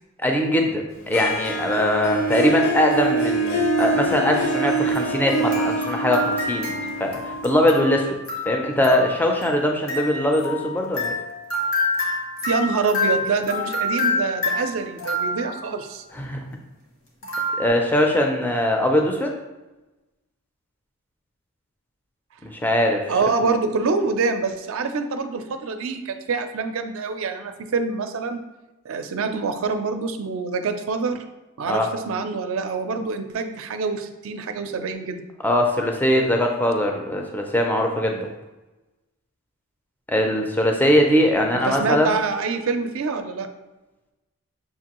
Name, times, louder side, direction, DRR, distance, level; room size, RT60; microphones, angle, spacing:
voice 1, 0.2-6.7 7.0-8.2 8.5-11.1 16.1-16.4 17.6-19.4 22.4-23.1 31.6-31.9 35.4-38.3 40.1-42.2, left 1 dB, 10° left, 2 dB, 0.4 m, -21 dB
Harp, 1.1-8.0, right 2 dB, 60° left, 0.6 m, -25 dB
sound 1, 4.9-15.8 17.2-17.7, left 2 dB, 85° left, 1.4 m, -28 dB
voice 2, 12.5-16.0 23.1-28.4 28.8-31.2 31.6-35.2 41.5-43.5, right 4 dB, 65° right, 7 dB, 0.4 m, -26 dB
6.6 x 2.6 x 2.9 m, 1.1 s
head